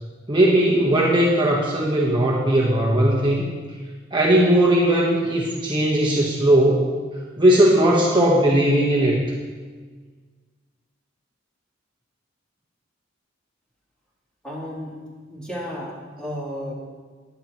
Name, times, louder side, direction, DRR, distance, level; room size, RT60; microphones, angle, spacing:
voice 1, 0.3-3.5 4.1-6.9 7.4-9.2, right 1 dB, 25° right, -3 dB, 1.3 m, -18 dB
voice 2, 14.4-15.0 15.3-16.7, equal, 5° left, -7 dB, 3.1 m, -33 dB
16.0 x 11.0 x 3.1 m, 1.5 s
head